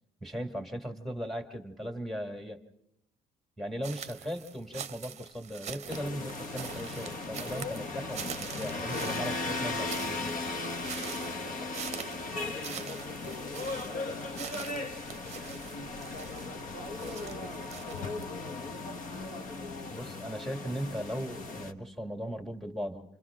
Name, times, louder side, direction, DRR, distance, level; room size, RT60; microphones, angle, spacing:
voice 1, 0.2-2.6 3.6-10.4 19.9-23.0, equal, ahead, 4 dB, 2.1 m, -38 dB
sound 1, 3.8-18.2, right 8 dB, 40° right, 0.7 m, -44 dB
sound 2, 5.9-21.7, left 3 dB, 50° left, 1.4 m, -37 dB
voice 2, 8.9-11.9 12.3-14.2 14.7-18.9, left 3 dB, 75° left, 4 dB, 1.6 m, -47 dB
29.0 x 26.0 x 3.7 m, 0.83 s
cardioid pair, 110°, 17 cm